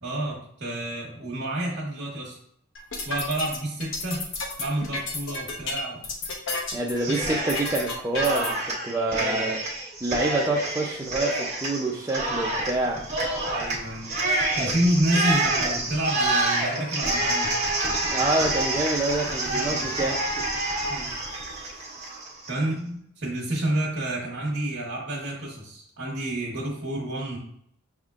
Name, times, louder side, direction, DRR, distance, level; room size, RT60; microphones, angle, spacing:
voice 1, 0.0-2.4 3.0-4.2 4.6-6.0 7.1-7.3 9.1-9.4 13.5-14.1 14.5-17.5 19.5-20.1 20.9-21.1 22.5-27.4, right 1 dB, 55° right, -5 dB, 1.1 m, -29 dB
sound 1, 2.8-8.5, left 3 dB, 60° left, 0.9 m, -32 dB
voice 2, 6.7-8.6 8.8-9.6 10.0-13.1 18.1-20.2, right 2 dB, 15° right, -3 dB, 0.4 m, -27 dB
Cheering, 7.0-7.8 8.1-22.5, right 2 dB, 35° right, 1.1 m, -28 dB
6.3 x 3.5 x 2.4 m, 0.68 s
head